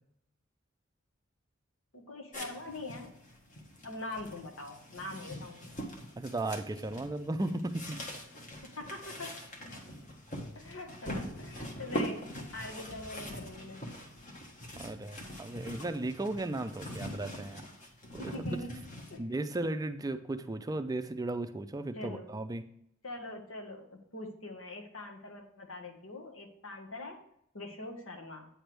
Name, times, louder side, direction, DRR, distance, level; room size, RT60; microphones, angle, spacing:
voice 1, 1.9-3.1 3.8-5.8 8.6-9.3 10.5-12.2 12.5-13.8 18.2-18.8 19.1-19.2 21.9-22.3 23.0-27.2 27.5-28.5, left 2 dB, 85° left, 2 dB, 1.4 m, -43 dB
sound 1, 2.3-19.2, equal, 40° left, 1.2 m, -43 dB
voice 2, 6.2-8.0 14.6-17.6 18.1-18.6 19.2-22.6, right 2 dB, 20° right, 8 dB, 0.4 m, -35 dB
8.7 x 3.4 x 6.0 m, 0.73 s
head